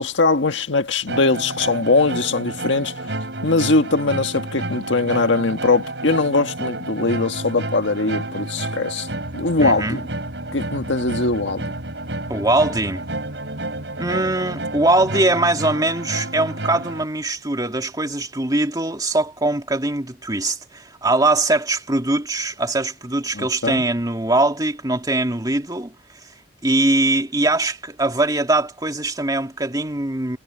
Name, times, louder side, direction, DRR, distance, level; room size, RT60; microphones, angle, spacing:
voice 1, 0.0-9.1 9.3-10.0 10.5-11.7 23.3-23.8, left 3 dB, 75° left, 1.6 m, -21 dB
sound 1, 1.1-17.0, right 2 dB, 65° right, 6.6 m, -30 dB
voice 2, 9.6-10.0 12.3-13.0 14.0-25.9 26.6-30.4, right 2 dB, 20° right, 2.3 m, -21 dB
head